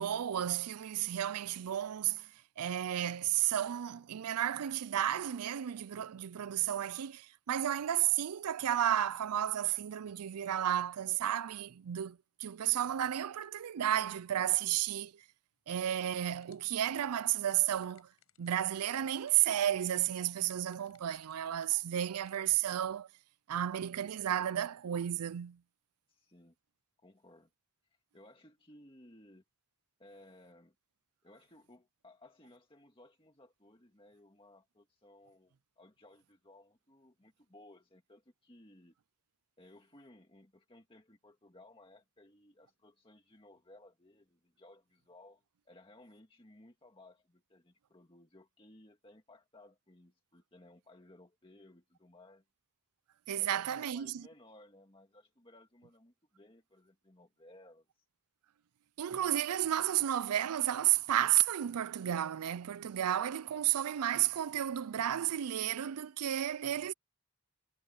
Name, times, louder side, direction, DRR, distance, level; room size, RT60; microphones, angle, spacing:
voice 1, 0.0-15.2 15.7-18.1 18.4-23.1 23.5-25.6 53.3-54.2 59.0-66.9, right 11 dB, 85° right, 0.4 m, -32 dB
sound 1, 15.6-22.5, left 10 dB, 70° left, 7.9 m, -68 dB
voice 2, 26.1-26.6 27.0-27.5 27.9-29.4 30.0-30.7 31.2-38.9 39.6-52.5 53.4-58.1, left 1 dB, 25° left, 2.0 m, -59 dB
head